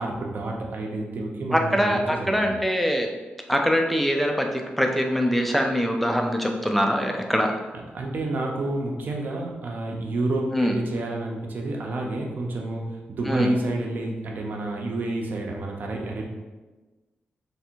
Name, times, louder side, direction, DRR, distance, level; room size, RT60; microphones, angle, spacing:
voice 1, 0.0-2.6 7.9-16.2, right 2 dB, 55° right, 0 dB, 0.6 m, -29 dB
voice 2, 1.5-3.1 3.5-7.5 10.5-10.7 13.2-13.5, equal, 5° left, 3 dB, 0.4 m, -23 dB
3.3 x 2.5 x 4.4 m, 1.2 s
wide cardioid pair, 150°, 4 cm